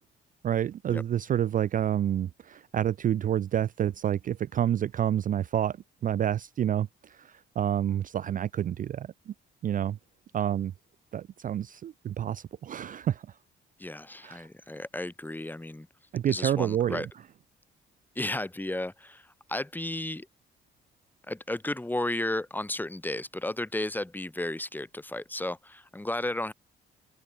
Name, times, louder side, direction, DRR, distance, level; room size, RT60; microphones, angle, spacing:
voice 1, 0.4-5.7 6.0-6.9 7.6-9.1 9.6-10.0 10.3-10.7 11.1-13.2 14.2-14.4 16.1-17.0, right 10 dB, 45° right, 0.4 m, -28 dB
voice 2, 13.8-15.9 16.3-17.1 18.2-20.3 21.3-26.5, left 1 dB, 10° left, 1.9 m, -33 dB
cardioid pair, 90°, 20 cm